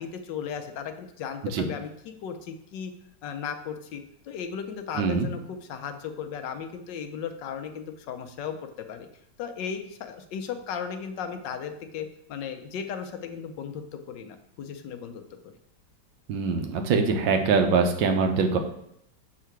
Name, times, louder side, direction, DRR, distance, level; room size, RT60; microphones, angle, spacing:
voice 1, 0.0-2.9 3.2-9.1 9.4-15.2, left 7 dB, 75° left, 7 dB, 1.3 m, -36 dB
voice 2, 4.9-5.3 16.3-18.6, right 4 dB, 85° right, 5 dB, 1.5 m, -23 dB
7.3 x 3.7 x 4.5 m, 0.75 s
omnidirectional pair, 2.0 m